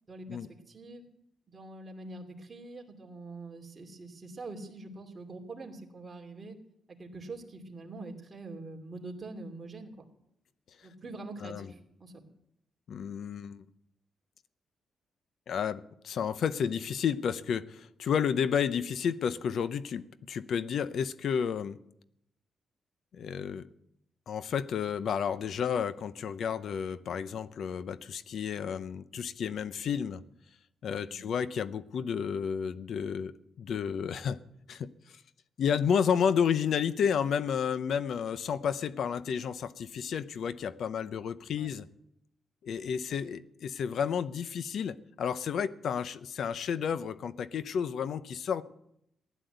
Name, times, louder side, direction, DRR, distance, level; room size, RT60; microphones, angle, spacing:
voice 1, 0.1-1.1 1.5-6.5 7.0-10.1 10.8-12.3 31.1-31.3 41.6-41.7, right 2 dB, 30° right, 2.8 m, -44 dB
voice 2, 12.9-13.6 15.5-21.8 23.1-23.7 24.3-30.2 30.8-33.3 33.6-34.4 34.7-35.2 35.6-41.9 42.6-48.6, left 7 dB, 65° left, 0.7 m, -31 dB
15.5 x 11.0 x 8.0 m
cardioid pair, 125°, 0 cm